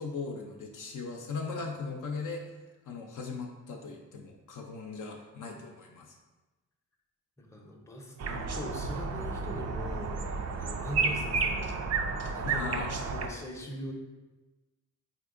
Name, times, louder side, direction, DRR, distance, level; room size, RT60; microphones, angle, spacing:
voice 1, 0.0-2.4 2.9-6.2 12.4-12.9, left 4 dB, 55° left, 1 dB, 0.5 m, -38 dB
voice 2, 7.4-11.9 12.3-13.9, equal, 10° left, 0 dB, 0.6 m, -41 dB
sound 1, 8.2-13.3, right 4 dB, 45° right, 0.4 m, -32 dB
3.5 x 2.8 x 2.4 m, 1.2 s
supercardioid pair, 50°, 38 cm